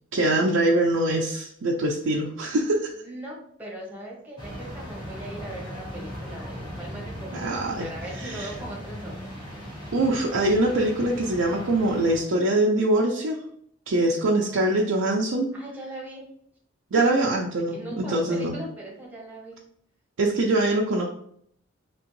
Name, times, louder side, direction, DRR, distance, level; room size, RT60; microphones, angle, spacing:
voice 1, 0.1-2.9 7.3-7.9 8.2-8.5 9.9-13.4 13.9-15.5 16.9-18.6 20.2-21.0, right 1 dB, 85° right, -2 dB, 0.5 m, -23 dB
voice 2, 3.0-9.2 15.5-16.2 16.9-17.0 17.7-19.6, right 1 dB, 10° right, -3 dB, 1.0 m, -39 dB
sound 1, 4.4-12.2, equal, 20° left, 1.3 m, -38 dB
3.4 x 2.9 x 3.0 m, 0.67 s
head